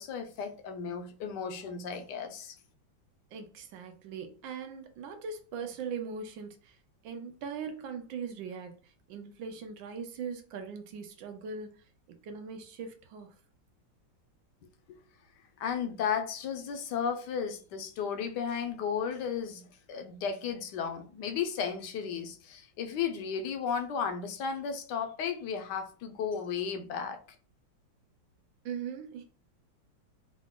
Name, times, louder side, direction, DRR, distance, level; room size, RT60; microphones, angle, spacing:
voice 1, 0.0-2.5 14.9-15.0 15.6-27.2, left 7 dB, 70° left, 1.2 m, -34 dB
voice 2, 3.3-6.8 7.0-8.8 9.1-11.7 12.1-13.3 28.6-29.2, right 6 dB, 80° right, 1.5 m, -40 dB
4.7 x 2.5 x 3.6 m
omnidirectional pair, 2.1 m